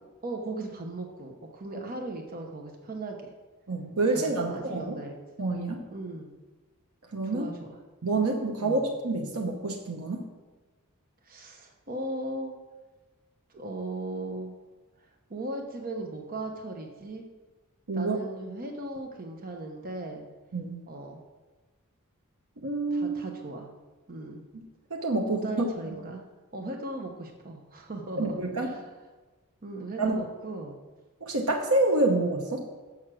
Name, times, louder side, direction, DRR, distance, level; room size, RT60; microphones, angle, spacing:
voice 1, 0.2-3.2 4.1-5.2 5.9-6.3 7.2-7.8 8.6-8.9 11.2-12.5 13.5-14.6 15.3-17.3 17.9-20.2 20.9-21.2 22.9-23.7 24.1-24.4 25.3-26.2 26.5-28.9 29.6-30.8, right 2 dB, 40° right, 2 dB, 1.0 m, -37 dB
voice 2, 3.7-5.0 5.4-5.8 7.1-7.5 8.0-10.2 17.9-18.2 20.5-20.8 22.6-23.2 24.5-24.6 24.9-25.7 28.2-28.7 30.0-30.2 31.2-32.6, right 2 dB, 70° right, 1 dB, 1.0 m, -27 dB
7.1 x 6.8 x 6.2 m, 1.2 s
head